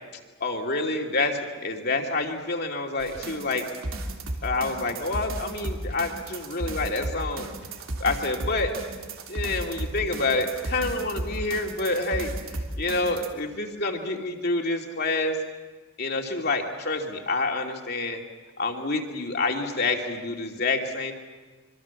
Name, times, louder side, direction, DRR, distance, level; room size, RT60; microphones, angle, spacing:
voice 1, 0.4-3.7 4.4-7.5 8.0-8.8 9.3-15.4 16.0-18.2 18.6-21.1, left 3 dB, 45° left, 2 dB, 2.7 m, -28 dB
sound 1, 3.0-13.3, right 1 dB, 70° right, 3.1 m, -34 dB
26.0 x 25.0 x 7.2 m, 1.3 s
head